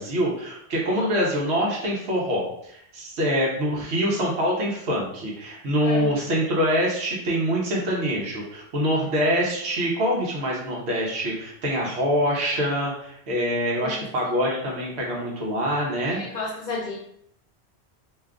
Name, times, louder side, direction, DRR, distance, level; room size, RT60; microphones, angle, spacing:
voice 1, 0.0-16.5, equal, 85° right, -3 dB, 1.0 m, -25 dB
voice 2, 16.1-17.0, left 3 dB, 55° left, -3 dB, 0.5 m, -31 dB
2.6 x 2.3 x 3.4 m, 0.71 s
omnidirectional pair, 1.1 m